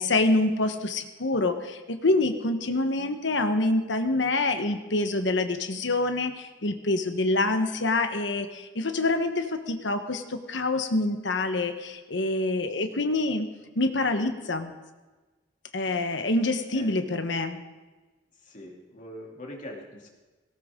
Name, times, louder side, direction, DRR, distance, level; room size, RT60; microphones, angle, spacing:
voice 1, 0.0-13.5 13.8-14.7 15.7-17.6, left 2 dB, 75° left, 7 dB, 1.2 m, -26 dB
voice 2, 12.7-13.0 15.8-16.0 16.7-17.3 18.3-20.1, left 1 dB, 45° left, -1 dB, 2.9 m, -44 dB
18.0 x 17.0 x 3.8 m, 1.2 s
head